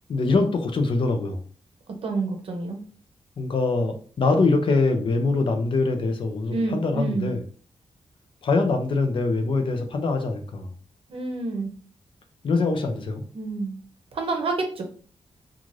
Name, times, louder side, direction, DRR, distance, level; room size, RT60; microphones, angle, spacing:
voice 1, 0.1-1.4 3.4-7.4 8.4-10.7 12.4-13.2, left 3 dB, 55° left, 5 dB, 0.5 m, -23 dB
voice 2, 2.0-2.8 6.5-7.3 11.1-11.7 13.3-13.8 14.1-14.8, right 3 dB, 60° right, 3 dB, 0.7 m, -28 dB
2.5 x 2.4 x 3.1 m, 0.42 s
wide cardioid pair, 165°, 11 cm